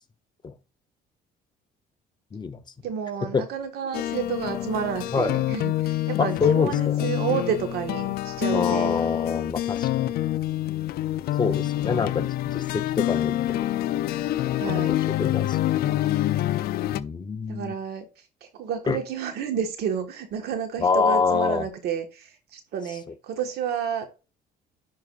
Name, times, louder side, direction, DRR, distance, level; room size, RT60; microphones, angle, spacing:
voice 1, 2.8-9.0 14.6-14.9 17.5-18.1 18.5-24.1, right 7 dB, 70° right, 1.4 m, -30 dB
sound 1, 3.9-17.0, left 14 dB, 65° left, 0.4 m, -26 dB
voice 2, 6.2-7.1 8.5-10.2 11.4-13.6 14.5-16.0 16.9-17.8 18.9-19.0 20.8-21.7, left 5 dB, 25° left, 0.7 m, -26 dB
10.5 x 4.8 x 2.5 m
cardioid pair, 110°, 17 cm